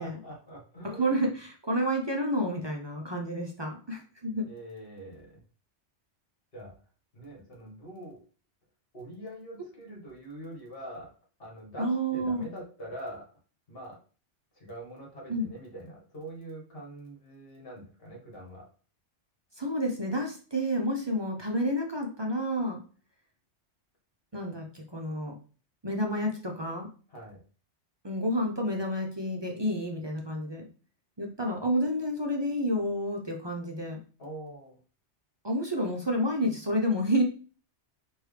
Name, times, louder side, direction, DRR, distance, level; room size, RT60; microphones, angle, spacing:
voice 1, 0.0-1.2 4.2-5.4 6.5-6.7 7.1-8.2 8.9-11.1 11.4-13.2 13.7-14.0 14.5-18.7 27.1-27.4 34.2-34.8, right 1 dB, 55° left, -2 dB, 1.7 m, -44 dB
voice 2, 0.8-4.5 11.8-12.5 15.3-15.5 19.6-22.8 24.3-25.3 25.8-26.9 28.0-30.7 31.2-34.0 35.4-37.2, equal, 40° right, 1 dB, 0.4 m, -30 dB
4.7 x 2.6 x 3.2 m, 0.39 s
omnidirectional pair, 1.2 m